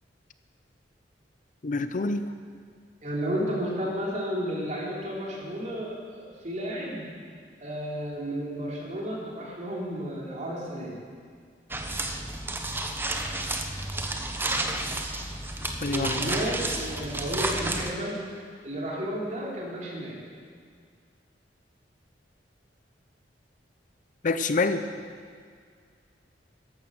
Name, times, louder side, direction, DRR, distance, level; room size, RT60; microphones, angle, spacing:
voice 1, 1.6-2.2 15.8-16.1 24.2-24.8, left 3 dB, 45° left, 10 dB, 0.6 m, -26 dB
voice 2, 3.0-7.0 7.6-11.0 15.8-18.2 18.6-20.2, equal, 45° right, -4 dB, 3.6 m, -32 dB
sound 1, 11.7-17.9, right 2 dB, 10° right, 0.9 m, -31 dB
13.5 x 11.5 x 6.5 m, 2.1 s
head